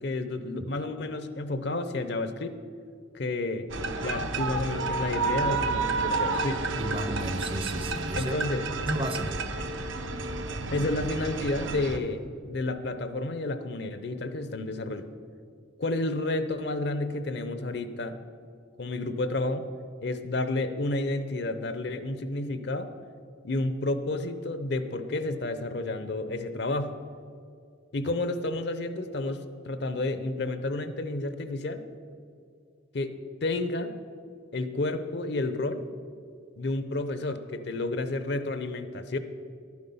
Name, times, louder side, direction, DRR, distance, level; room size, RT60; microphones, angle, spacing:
voice 1, 0.0-2.6 3.1-3.7 4.0-6.6 8.1-8.7 9.6-9.7 10.7-15.1 15.8-18.2 18.8-19.7 20.0-22.9 23.4-26.9 27.9-31.8 32.9-33.9 34.5-35.8 36.6-39.2, left 2 dB, 55° left, 10 dB, 0.6 m, -31 dB
sound 1, 3.7-12.0, right 3 dB, 75° right, 0.8 m, -30 dB
voice 2, 6.8-8.3 8.8-9.4, right 1 dB, 25° right, 9 dB, 0.6 m, -32 dB
12.0 x 9.6 x 5.4 m, 2.4 s
head